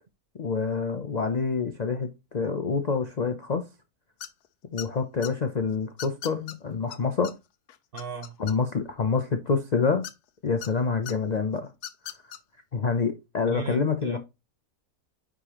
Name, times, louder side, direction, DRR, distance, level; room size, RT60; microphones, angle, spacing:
voice 1, 0.4-3.7 4.7-7.3 8.4-10.0 10.4-11.7 12.7-14.2, left 5 dB, 55° left, 0.4 m, -27 dB
sound 1, 4.2-4.5 4.8-5.3 6.0-6.6 6.9-7.0 7.2-7.3 7.7-8.9 10.0-10.7 11.1-11.2 11.7-12.4, left 11 dB, 85° left, 1.2 m, -38 dB
voice 2, 7.9-8.4 13.5-14.2, right 6 dB, 50° right, 0.8 m, -36 dB
9.7 x 3.8 x 2.9 m
omnidirectional pair, 1.6 m